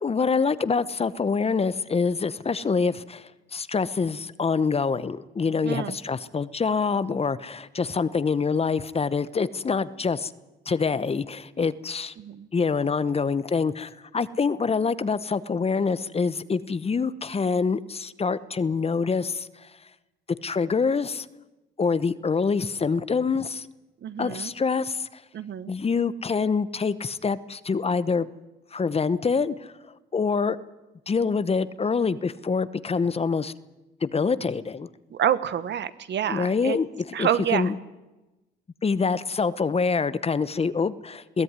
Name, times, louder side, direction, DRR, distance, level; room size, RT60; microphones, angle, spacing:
voice 1, 0.0-10.3 10.7-12.1 12.5-19.7 20.4-21.3 21.8-23.7 24.2-25.2 25.7-28.3 28.7-29.7 30.1-30.6 31.1-33.5 34.0-34.9 36.3-36.9 37.2-37.8 38.8-41.4, left 5 dB, 30° left, 16 dB, 0.9 m, -25 dB
voice 2, 5.6-6.0 12.2-12.5 24.0-24.5 25.3-25.7 35.1-36.8 37.1-37.7, right 9 dB, 60° right, 14 dB, 1.2 m, -27 dB
21.5 x 16.0 x 9.7 m, 1.1 s
cardioid pair, 90°, 20 cm